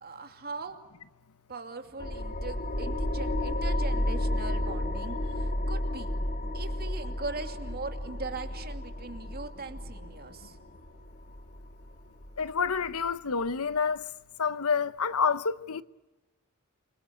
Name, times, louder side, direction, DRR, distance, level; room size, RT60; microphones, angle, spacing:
voice 1, 0.0-0.8 1.5-6.1 6.5-10.6, right 3 dB, 45° right, 2.7 m, -40 dB
sound 1, 2.0-13.1, left 1 dB, 40° left, 3.4 m, -32 dB
voice 2, 12.4-14.1 14.4-15.8, left 5 dB, 75° left, 0.9 m, -28 dB
29.0 x 23.0 x 8.3 m
head